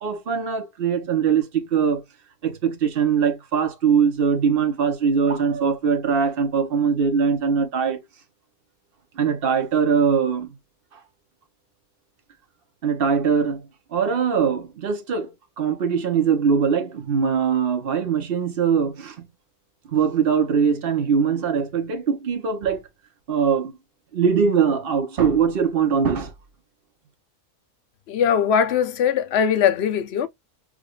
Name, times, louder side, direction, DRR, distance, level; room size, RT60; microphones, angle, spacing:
voice 1, 0.0-2.0 2.4-8.0 9.2-10.5 12.8-13.6 13.9-19.3 19.9-22.8 23.3-23.7 24.1-26.3, right 6 dB, 45° right, 1.1 m, -21 dB
voice 2, 28.1-30.3, left 8 dB, 55° left, 0.9 m, -20 dB
5.0 x 2.5 x 2.5 m
omnidirectional pair, 1.5 m